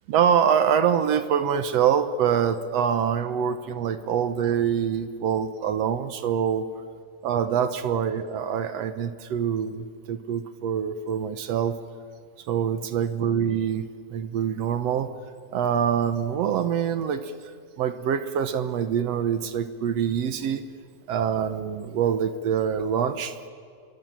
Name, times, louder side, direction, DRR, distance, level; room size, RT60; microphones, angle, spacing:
voice 1, 0.1-6.7 7.2-11.8 12.5-15.1 15.5-17.3 17.8-20.6 21.1-23.3, right 8 dB, 65° right, 11 dB, 1.8 m, -25 dB
28.0 x 23.5 x 7.5 m, 2.2 s
omnidirectional pair, 3.7 m